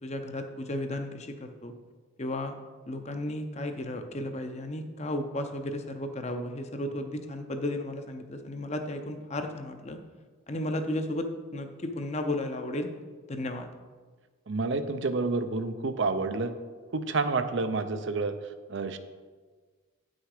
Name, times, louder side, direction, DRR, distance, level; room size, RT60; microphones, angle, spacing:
voice 1, 0.0-1.7 2.2-2.6 2.9-10.0 10.5-11.3 11.5-13.0 13.3-13.7, left 1 dB, 30° left, 6 dB, 0.6 m, -34 dB
voice 2, 14.5-16.5 16.9-18.4 18.7-19.0, right 3 dB, 60° right, 9 dB, 0.6 m, -29 dB
9.4 x 6.3 x 4.9 m, 1.4 s
head